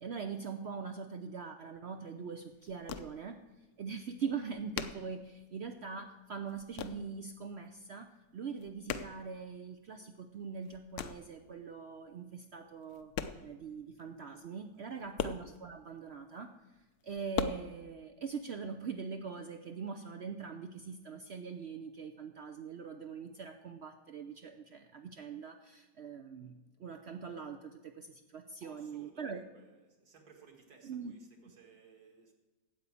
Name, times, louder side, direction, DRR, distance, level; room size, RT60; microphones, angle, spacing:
voice 1, 0.0-3.4 3.8-13.1 13.4-16.5 17.0-29.4 30.8-31.1, right 5 dB, 80° right, 7 dB, 0.5 m, -42 dB
sound 1, 2.0-2.1 2.3-3.5 3.8-3.9 4.1-5.9 6.2-7.1 7.4-8.0 8.3-9.9 10.3-11.4 12.1-12.2 12.8-13.7 14.0-14.1 14.3-14.4 14.7-16.2 16.6-17.4, left 9 dB, 70° left, 1.1 m, -40 dB
voice 2, 28.6-32.3, right 5 dB, 60° right, 3 dB, 2.3 m, -60 dB
9.2 x 8.0 x 8.4 m, 1.1 s
omnidirectional pair, 1.9 m